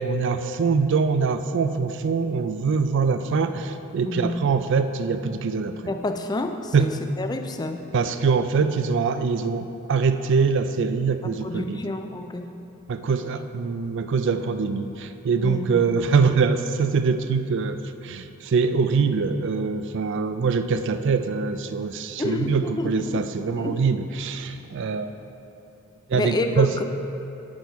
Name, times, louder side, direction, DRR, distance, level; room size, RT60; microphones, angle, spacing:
voice 1, 0.0-5.8 6.7-6.9 7.9-11.8 12.9-17.8 18.0-25.1 26.1-26.7, right 5 dB, 55° right, 10 dB, 0.4 m, -23 dB
voice 2, 4.1-4.4 5.9-7.8 11.2-12.5 15.4-15.8 22.2-23.8 26.1-26.8, left 2 dB, 20° left, 6 dB, 0.3 m, -29 dB
8.4 x 6.2 x 4.6 m, 2.8 s
head